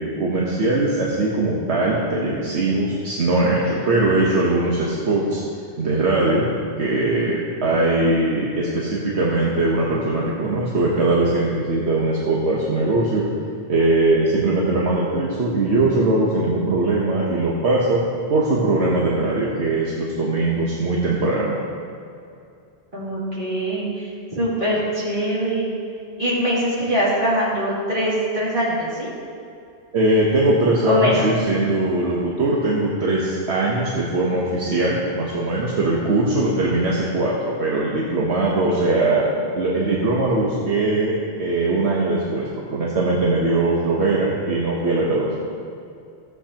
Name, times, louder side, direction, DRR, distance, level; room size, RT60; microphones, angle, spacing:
voice 1, 0.0-5.4 5.8-6.5 6.8-13.3 13.7-18.0 18.3-21.5 29.9-39.2 39.5-45.4, right 2 dB, 75° right, -4 dB, 1.3 m, -20 dB
voice 2, 7.7-8.1 22.9-25.7 26.2-29.1 30.8-31.3 38.5-38.9, equal, 50° right, -8 dB, 3.0 m, -23 dB
14.5 x 8.0 x 2.9 m, 2.5 s
omnidirectional pair, 1.1 m